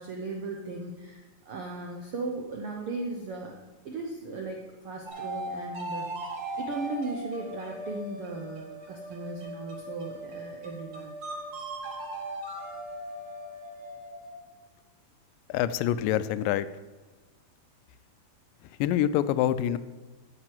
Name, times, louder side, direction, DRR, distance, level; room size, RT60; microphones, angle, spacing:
voice 1, 0.0-3.6 3.8-11.1, right 3 dB, 75° right, 1 dB, 1.3 m, -37 dB
sound 1, 5.1-14.5, right 1 dB, 45° right, 1.2 m, -39 dB
voice 2, 15.5-16.7 18.8-19.8, left 11 dB, 85° left, 14 dB, 2.2 m, -26 dB
8.9 x 7.9 x 7.7 m, 1.3 s
omnidirectional pair, 3.9 m